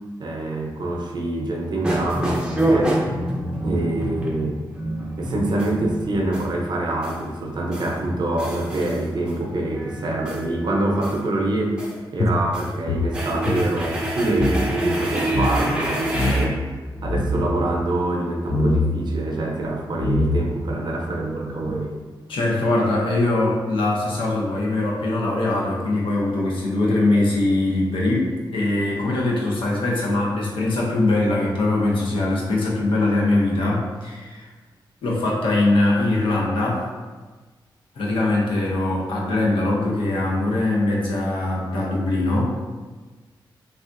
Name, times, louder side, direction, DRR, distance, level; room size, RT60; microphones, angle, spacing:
voice 1, 0.2-3.0 3.6-4.6 5.2-11.8 12.1-16.6 17.0-21.9, right 2 dB, 60° right, -1 dB, 0.6 m, -25 dB
sound 1, 1.8-6.5 7.0-7.3 7.7-8.0 8.4-9.4 9.7-11.2 11.8-12.0 12.4-12.7 13.1-16.5, right 1 dB, 10° right, 0.6 m, -27 dB
sound 2, 12.2-14.6 14.9-15.0 15.3-15.6 16.1-16.6 17.0-17.5 18.5-18.9 19.6-19.7 20.0-20.6, left 1 dB, 35° left, 0.4 m, -23 dB
voice 2, 22.3-34.5 35.0-36.9 38.0-42.5, left 2 dB, 85° left, -3 dB, 0.7 m, -22 dB
3.4 x 2.4 x 2.5 m, 1.3 s
cardioid pair, 85°, 9 cm